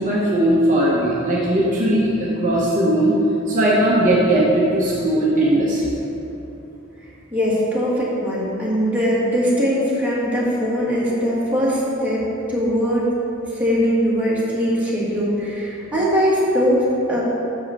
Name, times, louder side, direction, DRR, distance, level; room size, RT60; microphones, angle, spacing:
voice 1, 0.0-3.2 3.5-5.9, right 1 dB, 40° right, -6 dB, 0.9 m, -18 dB
voice 2, 7.3-13.1 13.5-17.2, equal, 5° right, -9 dB, 1.9 m, -21 dB
6.3 x 5.5 x 6.5 m, 2.9 s
head